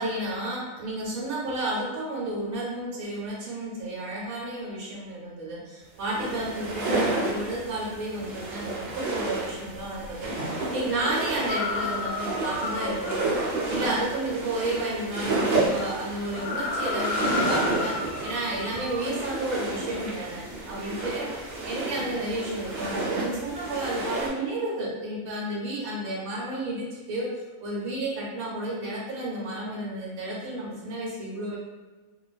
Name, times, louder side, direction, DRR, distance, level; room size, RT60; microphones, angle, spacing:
voice 1, 0.0-13.4 13.7-21.3 21.6-31.6, right 1 dB, 90° right, -4 dB, 1.1 m, -32 dB
sound 1, 6.0-24.3, right 2 dB, 55° right, 0.5 m, -31 dB
sound 2, 11.5-14.0 16.3-19.2, left 3 dB, 65° left, 0.9 m, -32 dB
2.6 x 2.2 x 2.3 m, 1.2 s
omnidirectional pair, 1.4 m